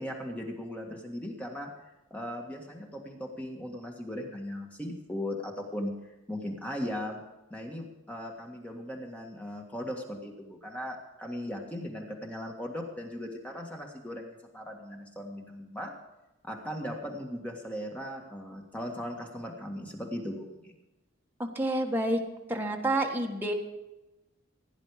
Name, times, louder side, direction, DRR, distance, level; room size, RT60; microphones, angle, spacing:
voice 1, 0.0-1.7 2.1-5.9 6.3-7.2 7.5-15.9 16.4-20.7, equal, 5° left, 1 dB, 1.7 m, -38 dB
voice 2, 21.4-22.2 22.5-23.5, right 1 dB, 10° right, 1 dB, 1.5 m, -28 dB
17.0 x 10.5 x 4.9 m, 0.98 s
head